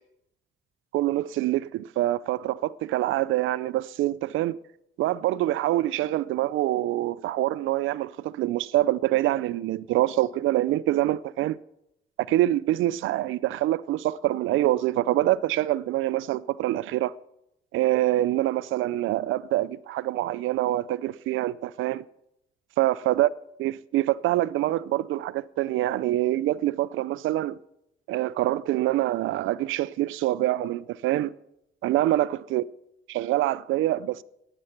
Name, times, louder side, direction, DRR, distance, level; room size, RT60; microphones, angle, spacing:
voice 1, 0.9-4.6 5.0-11.6 12.3-17.1 17.7-22.0 22.8-23.3 23.6-27.6 28.1-31.3 31.8-32.6 33.1-34.2, right 15 dB, 80° right, 0.4 m, -25 dB
11.0 x 11.0 x 5.9 m
cardioid pair, 90°, 20 cm